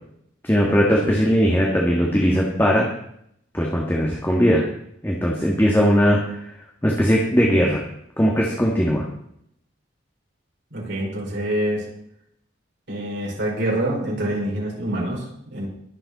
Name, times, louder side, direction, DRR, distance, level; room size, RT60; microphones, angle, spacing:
voice 1, 0.4-2.9 3.5-4.6 5.0-6.4 6.8-7.8 8.2-9.0, equal, 10° left, -2 dB, 1.8 m, -19 dB
voice 2, 10.7-11.8 12.9-15.7, right 1 dB, 65° right, -3 dB, 5.2 m, -26 dB
22.5 x 7.5 x 4.2 m, 0.72 s
head